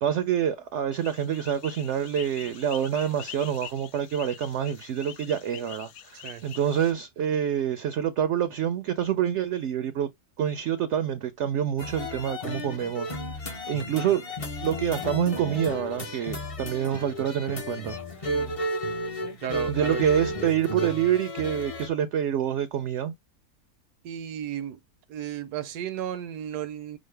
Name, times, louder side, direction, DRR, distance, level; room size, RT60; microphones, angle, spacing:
voice 1, 0.0-10.1 10.4-13.2 13.4-14.2 14.6-18.0 19.7-23.1, right 9 dB, 70° right, 0.7 m, -27 dB
sound 1, 0.9-6.9, left 9 dB, 70° left, 1.1 m, -44 dB
sound 2, 11.8-21.9, equal, 35° left, 0.6 m, -33 dB
voice 2, 19.4-20.0 24.0-24.8 25.1-27.0, right 10 dB, 90° right, 1.2 m, -34 dB
6.2 x 2.1 x 3.3 m
omnidirectional pair, 1.6 m